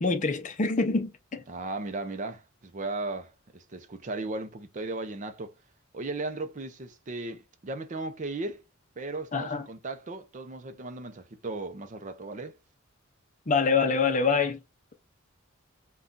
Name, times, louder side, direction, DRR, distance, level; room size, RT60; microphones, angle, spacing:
voice 1, 0.0-1.4 9.3-9.7 13.5-14.6, left 4 dB, 35° left, 0.6 m, -25 dB
voice 2, 1.5-5.5 5.9-8.6 9.0-12.5, right 2 dB, 35° right, 0.5 m, -36 dB
2.6 x 2.3 x 3.6 m
head